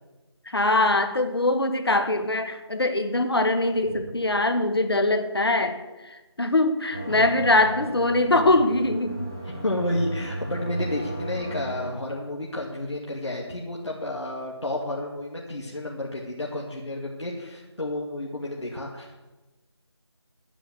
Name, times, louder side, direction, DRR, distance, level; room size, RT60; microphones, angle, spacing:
voice 1, 0.4-9.3, left 2 dB, 60° left, 8 dB, 1.6 m, -23 dB
sound 1, 6.9-11.9, right 1 dB, 5° right, 0.6 m, -34 dB
voice 2, 7.1-7.4 9.4-19.2, left 1 dB, 80° left, -3 dB, 2.5 m, -31 dB
10.0 x 9.9 x 7.7 m, 1.1 s
figure-of-eight pair, 170°, 15 cm